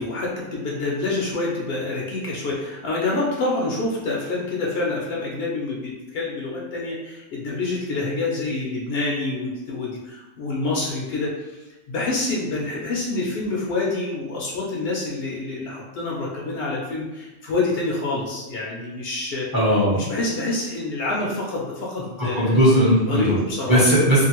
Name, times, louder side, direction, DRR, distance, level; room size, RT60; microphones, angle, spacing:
voice 1, 0.0-11.6 11.9-19.5 19.9-22.6 23.1-23.9, left 2 dB, 65° left, -3 dB, 0.7 m, -27 dB
voice 2, 19.5-20.0 22.3-23.3 23.7-24.2, equal, 25° right, -8 dB, 0.7 m, -17 dB
2.6 x 2.4 x 2.9 m, 1.1 s
omnidirectional pair, 1.1 m